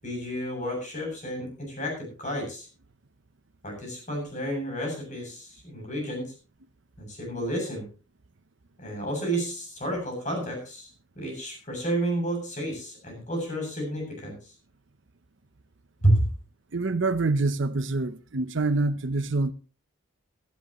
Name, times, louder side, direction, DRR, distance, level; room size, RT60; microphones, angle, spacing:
voice 1, 0.0-2.7 3.6-6.3 7.0-7.9 8.8-10.9 11.2-14.4 16.0-16.2, right 1 dB, 35° left, 7.7 m, -30 dB
voice 2, 16.7-19.5, right 3 dB, 60° right, 0.7 m, -26 dB
18.0 x 12.5 x 3.0 m
head